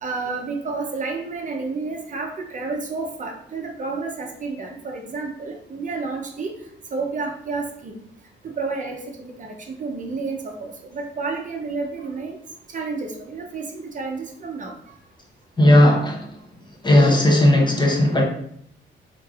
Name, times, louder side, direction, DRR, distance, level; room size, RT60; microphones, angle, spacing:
voice 1, 0.0-6.5 6.9-8.0 8.4-12.4 12.7-15.0, right 4 dB, 40° right, 1 dB, 0.7 m, -30 dB
voice 2, 15.6-16.3 16.8-18.2, left 1 dB, 20° left, 0 dB, 0.8 m, -15 dB
3.6 x 3.2 x 2.4 m, 0.68 s
cardioid pair, 90°, 20 cm